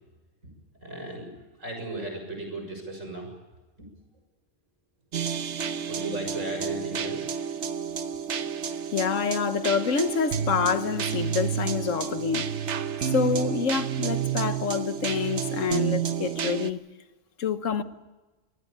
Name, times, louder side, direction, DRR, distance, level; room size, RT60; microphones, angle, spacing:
voice 1, 0.8-1.3 1.6-3.3 5.9-7.3, right 2 dB, 90° right, 6.8 m, -35 dB
sound 1, 5.1-16.7, right 8 dB, 65° right, 1.2 m, -30 dB
voice 2, 8.9-12.5 13.1-16.8 17.4-17.8, left 6 dB, 90° left, 1.5 m, -27 dB
24.5 x 18.5 x 8.6 m
omnidirectional pair, 1.3 m